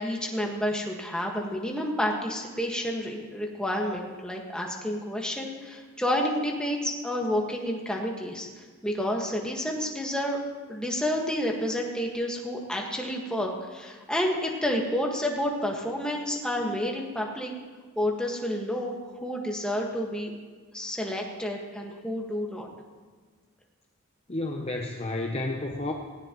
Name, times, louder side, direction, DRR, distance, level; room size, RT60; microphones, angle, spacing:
voice 1, 0.0-8.5 8.8-10.4 10.7-17.5 17.9-18.9 19.2-20.3 20.7-22.7, equal, 5° left, -1 dB, 1.7 m, -30 dB
voice 2, 24.3-25.9, left 2 dB, 30° left, 1 dB, 0.8 m, -31 dB
18.0 x 17.0 x 3.1 m, 1.5 s
head